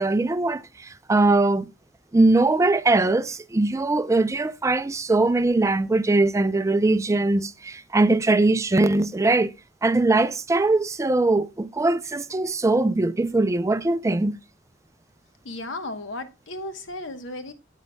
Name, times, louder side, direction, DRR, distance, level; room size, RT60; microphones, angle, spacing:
voice 1, 0.0-1.7 2.1-9.5 9.8-14.4, right 2 dB, 15° right, 0.4 m, -21 dB
voice 2, 15.4-17.5, left 2 dB, 70° left, 1.0 m, -34 dB
9.3 x 8.2 x 2.2 m
head